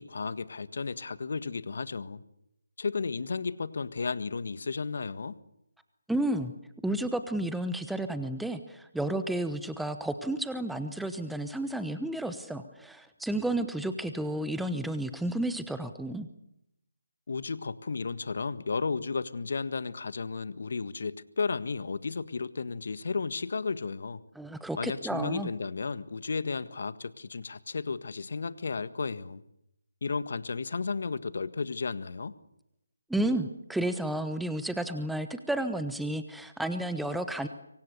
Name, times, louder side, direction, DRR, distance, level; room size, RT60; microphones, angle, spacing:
voice 1, 0.0-2.2 2.8-5.4 17.3-24.2 24.8-29.4 30.0-32.3, left 4 dB, 55° left, 14 dB, 1.6 m, -33 dB
voice 2, 6.1-6.5 6.8-16.3 24.4-25.5 33.1-37.5, right 1 dB, ahead, 9 dB, 1.0 m, -32 dB
27.0 x 24.0 x 6.9 m, 0.82 s
figure-of-eight pair, 155°, 0 cm